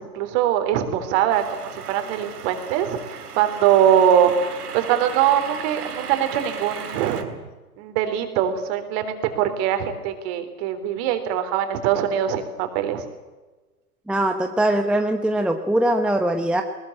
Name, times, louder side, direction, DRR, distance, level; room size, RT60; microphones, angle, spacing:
voice 1, 0.0-7.4 7.8-13.0, right 9 dB, 40° right, 8 dB, 3.9 m, -22 dB
sound 1, 1.3-7.2, right 6 dB, 70° right, 3.6 m, -36 dB
voice 2, 14.1-16.6, right 1 dB, ahead, 5 dB, 1.0 m, -21 dB
21.0 x 20.0 x 8.9 m, 1.2 s
figure-of-eight pair, 115°, 47 cm